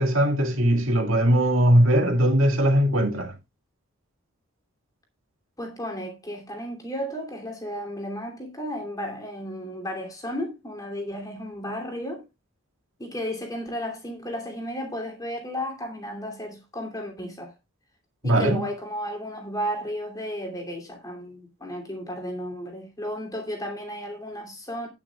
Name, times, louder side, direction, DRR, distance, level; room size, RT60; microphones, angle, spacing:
voice 1, 0.0-3.3 18.2-18.6, equal, 65° right, 2.2 m, -20 dB
voice 2, 5.6-12.3 13.0-17.5 18.2-24.9, equal, 15° left, 2.8 m, -33 dB
18.5 x 6.2 x 2.4 m
head